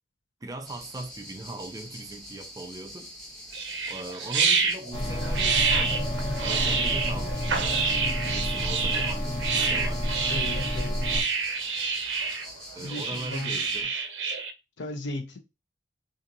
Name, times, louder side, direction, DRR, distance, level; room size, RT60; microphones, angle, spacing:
voice 1, 0.4-3.1 3.9-6.0 6.4-10.4 12.7-13.9, right 2 dB, 20° right, 0.3 m, -40 dB
sound 1, 0.6-13.8, equal, 5° left, 0.9 m, -44 dB
sound 2, 3.5-14.5, right 5 dB, 85° right, 0.5 m, -28 dB
sound 3, 4.9-11.2, left 1 dB, 30° left, 0.6 m, -30 dB
voice 2, 10.3-11.0 12.8-13.6 14.8-15.4, left 2 dB, 85° left, 0.6 m, -35 dB
2.8 x 2.5 x 2.5 m
head